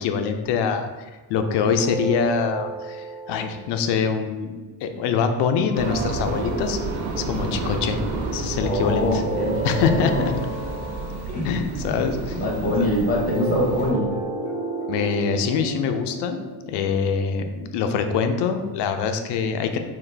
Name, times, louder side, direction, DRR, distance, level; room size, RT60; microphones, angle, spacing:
voice 1, 0.0-4.5 4.8-6.8 7.2-8.0 8.3-9.1 9.6-10.1 11.4-12.9 14.9-16.4 16.7-19.8, left 6 dB, 60° left, 7 dB, 0.5 m, -24 dB
sound 1, 1.4-3.9 5.6-7.4 8.8-11.5 12.9-17.4, right 2 dB, 20° right, 0.9 m, -32 dB
sound 2, 5.7-13.9, right 3 dB, 75° right, 0.8 m, -30 dB
voice 2, 8.6-9.7 10.2-10.3 11.3-11.5 12.3-14.1, left 1 dB, 20° left, -2 dB, 0.8 m, -23 dB
3.9 x 2.5 x 3.3 m, 1.3 s
cardioid pair, 145°, 48 cm